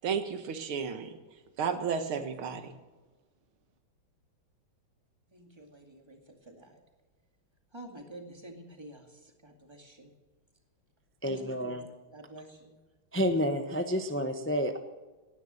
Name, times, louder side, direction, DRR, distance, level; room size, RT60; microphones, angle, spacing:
voice 1, 0.0-1.1 1.6-2.8, right 6 dB, 90° right, 8 dB, 2.2 m, -32 dB
voice 2, 5.3-6.8 7.7-10.1 11.2-11.8 12.1-12.8, right 1 dB, 15° right, 3 dB, 2.1 m, -49 dB
voice 3, 11.2-11.8 13.1-14.8, equal, 15° left, 7 dB, 0.4 m, -29 dB
17.5 x 11.0 x 6.5 m, 1.2 s
omnidirectional pair, 2.3 m